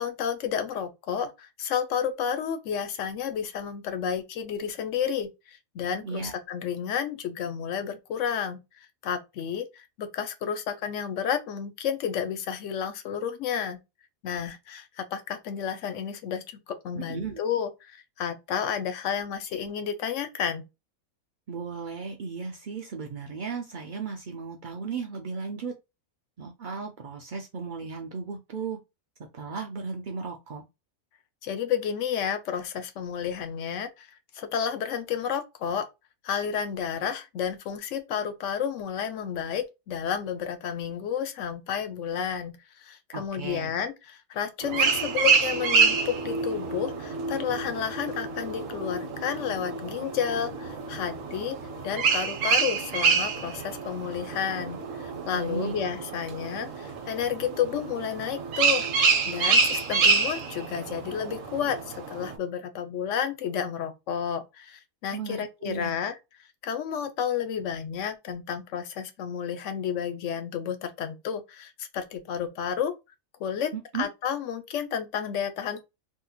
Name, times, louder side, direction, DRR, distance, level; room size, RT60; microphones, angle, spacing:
voice 1, 0.0-8.6 9.0-13.8 14.2-20.6 31.4-34.1 34.3-35.9 36.2-51.6 51.8-66.1 66.6-72.9 73.4-75.8, left 8 dB, 65° left, 0.9 m, -31 dB
voice 2, 6.0-6.3 16.9-17.4 21.5-25.7 26.4-28.8 29.3-30.6 43.1-43.7 55.3-55.8 65.1-66.0 73.7-74.1, right 5 dB, 90° right, 0.4 m, -35 dB
sound 1, 44.6-62.4, right 5 dB, 65° right, 1.0 m, -27 dB
3.6 x 2.8 x 2.3 m
omnidirectional pair, 1.6 m